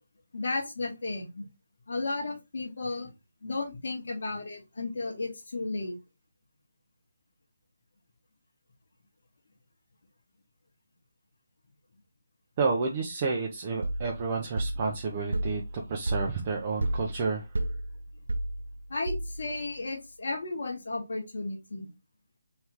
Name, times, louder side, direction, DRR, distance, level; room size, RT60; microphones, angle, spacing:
voice 1, 0.3-1.5 1.9-3.1 3.4-6.0 18.9-21.9, left 3 dB, 60° left, 0 dB, 1.3 m, -34 dB
voice 2, 12.6-17.4, right 4 dB, 35° right, 0 dB, 0.7 m, -30 dB
sound 1, 13.8-19.6, right 1 dB, 75° right, 0.4 m, -33 dB
3.4 x 3.3 x 2.9 m, 0.24 s
figure-of-eight pair, 155°, 0 cm